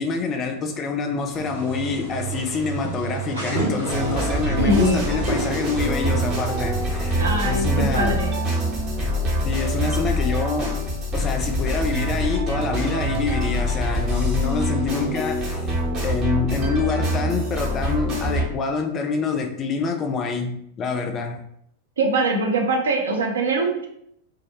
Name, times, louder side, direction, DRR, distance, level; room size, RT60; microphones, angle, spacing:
voice 1, 0.0-8.2 9.4-10.8 11.1-15.7 16.0-21.4, left 4 dB, 30° left, 0.3 m, -26 dB
sound 1, 1.3-7.2, right 4 dB, 85° right, 1.1 m, -30 dB
sound 2, 3.9-18.5, equal, 30° right, 0.7 m, -25 dB
voice 2, 4.6-5.1 7.1-8.4 22.0-23.9, right 2 dB, 70° right, 0.4 m, -22 dB
2.2 x 2.0 x 2.7 m
figure-of-eight pair, 90°, 0 cm